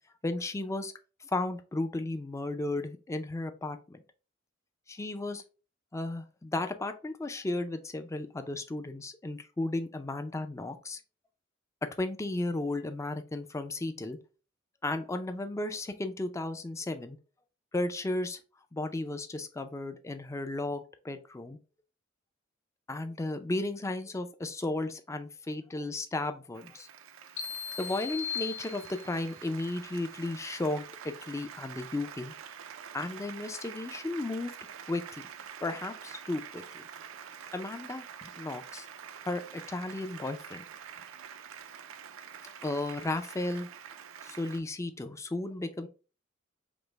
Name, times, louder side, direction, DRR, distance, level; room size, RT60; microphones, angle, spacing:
voice 1, 0.2-0.9 1.2-4.0 4.9-5.4 5.9-11.0 12.0-14.2 14.8-17.2 17.7-18.4 18.7-21.6 22.9-26.9 27.8-32.3 32.9-34.5 34.9-35.2 35.6-36.8 37.5-38.9 39.2-40.6 42.6-43.7 44.2-45.9, left 2 dB, 15° left, 8 dB, 0.4 m, -34 dB
Applause, 26.5-44.6, right 8 dB, 80° right, 0.4 m, -47 dB
sound 1, 27.4-29.3, left 8 dB, 70° left, 0.9 m, -38 dB
5.1 x 2.0 x 3.3 m, 0.34 s
head